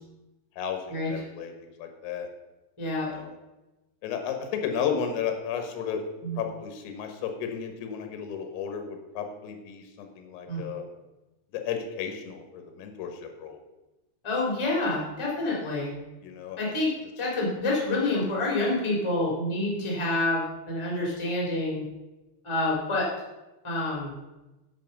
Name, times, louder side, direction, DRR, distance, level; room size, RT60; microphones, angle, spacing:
voice 1, 0.6-1.5 1.8-2.3 3.1-3.3 4.0-6.0 6.4-10.9 11.5-13.6 16.2-16.6, left 7 dB, 90° left, 5 dB, 4.0 m, -33 dB
voice 2, 2.8-3.1 6.2-6.4 10.5-10.6 14.2-16.0 16.6-16.9 17.2-21.8 22.4-23.1 23.6-24.1, left 2 dB, 10° left, -3 dB, 1.7 m, -27 dB
10.5 x 7.4 x 5.3 m, 1.0 s
omnidirectional pair, 5.8 m